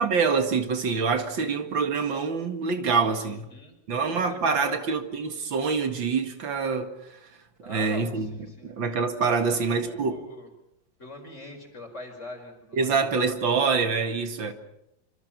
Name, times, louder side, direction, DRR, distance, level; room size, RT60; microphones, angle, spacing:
voice 1, 0.0-3.5 3.9-6.9 7.7-8.3 8.6-10.1 12.7-14.5, right 5 dB, 80° right, 2.7 m, -25 dB
voice 2, 3.0-4.8 7.6-8.7 9.3-10.5 11.0-13.0 14.2-14.5, left 1 dB, 35° left, 5.6 m, -42 dB
26.0 x 25.5 x 6.1 m
omnidirectional pair, 2.0 m